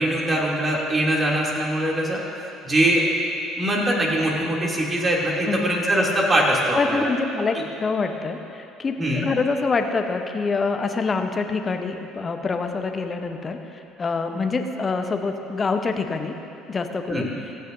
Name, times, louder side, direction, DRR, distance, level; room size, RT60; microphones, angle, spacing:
voice 1, 0.0-2.2 2.6-3.0 3.6-7.1 7.5-7.6 9.0-9.3 17.1-17.3, right 1 dB, 25° right, -3 dB, 2.9 m, -22 dB
voice 2, 5.5-5.8 6.8-13.6 14.0-16.4 16.7-17.3, left 4 dB, 30° left, 6 dB, 1.0 m, -25 dB
24.5 x 9.3 x 2.7 m, 2.7 s
figure-of-eight pair, 55°, 0 cm